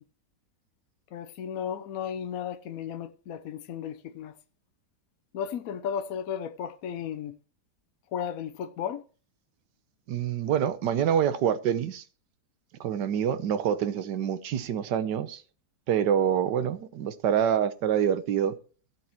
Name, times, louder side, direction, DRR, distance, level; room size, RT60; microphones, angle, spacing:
voice 1, 1.1-4.4 5.3-7.4 8.1-9.0, left 8 dB, 65° left, 1.0 m, -34 dB
voice 2, 10.1-12.0 12.8-15.4 15.9-18.5, right 9 dB, 80° right, 1.5 m, -26 dB
16.0 x 7.7 x 3.0 m
omnidirectional pair, 1.8 m